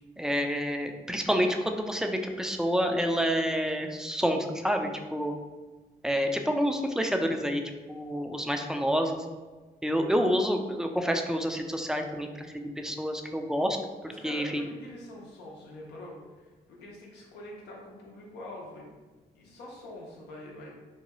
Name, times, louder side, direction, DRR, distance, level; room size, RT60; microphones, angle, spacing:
voice 1, 0.2-5.3 6.0-7.6 7.9-9.3 9.8-13.8 14.2-14.7, equal, 5° right, 4 dB, 0.3 m, -28 dB
voice 2, 14.1-18.9 19.3-20.8, left 1 dB, 85° left, -3 dB, 0.7 m, -45 dB
2.7 x 2.2 x 2.9 m, 1.3 s
supercardioid pair, 65°, 17 cm